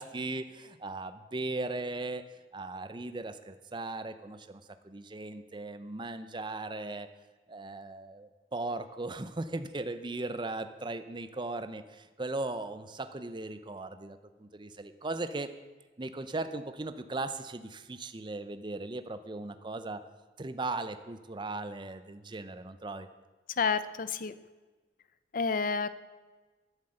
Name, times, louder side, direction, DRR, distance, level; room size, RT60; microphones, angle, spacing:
voice 1, 0.0-2.2 2.5-7.1 7.5-15.5 16.0-20.0 20.4-23.1, right 2 dB, 25° right, 10 dB, 0.6 m, -38 dB
voice 2, 23.6-24.3 25.3-25.9, left 5 dB, 45° left, 14 dB, 0.6 m, -29 dB
12.5 x 7.9 x 7.8 m, 1.3 s
head